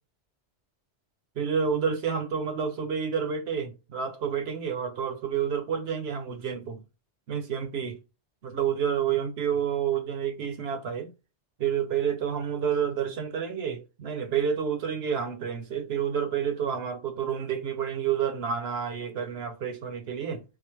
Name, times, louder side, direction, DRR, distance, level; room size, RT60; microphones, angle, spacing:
voice 1, 1.4-6.8 7.3-8.0 8.4-11.1 11.6-20.4, right 7 dB, 65° right, 0.9 m, -29 dB
3.8 x 2.5 x 3.0 m
omnidirectional pair, 1.2 m